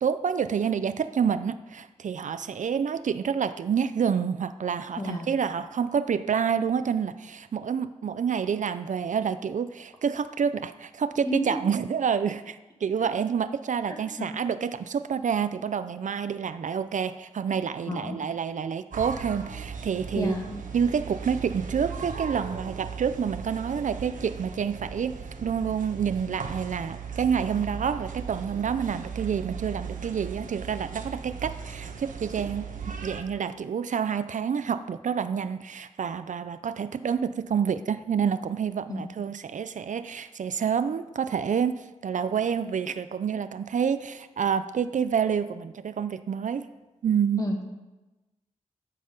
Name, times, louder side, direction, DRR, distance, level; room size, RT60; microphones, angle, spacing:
voice 1, 0.0-20.3 20.7-25.1 25.4-46.6 47.0-47.4, right 7 dB, 70° right, 12 dB, 0.5 m, -28 dB
voice 2, 5.0-5.3 11.2-11.5 13.9-14.3 17.9-18.2 20.2-20.6 38.9-39.1 47.4-47.6, left 1 dB, 25° left, 1 dB, 1.9 m, -31 dB
sound 1, 18.9-33.2, right 6 dB, 85° right, 1.1 m, -37 dB
12.5 x 7.6 x 5.4 m, 1.1 s
wide cardioid pair, 120°, 13 cm